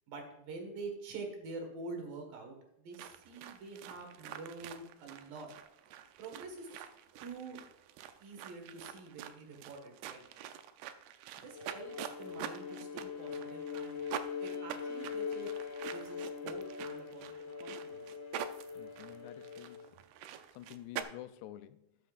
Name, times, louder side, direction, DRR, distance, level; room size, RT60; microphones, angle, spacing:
voice 1, 0.1-5.5 6.2-6.8 7.2-7.6 8.2-10.2 11.4-14.0 14.4-15.5 15.8-17.3 17.6-18.1, right 3 dB, 65° right, 3.1 m, -46 dB
sound 1, 2.9-21.0, right 10 dB, 80° right, 2.5 m, -46 dB
Bowed string instrument, 11.5-19.9, left 6 dB, 70° left, 1.5 m, -42 dB
voice 2, 18.7-20.0 20.5-21.8, left 13 dB, 85° left, 2.6 m, -49 dB
13.0 x 7.8 x 2.5 m
omnidirectional pair, 4.6 m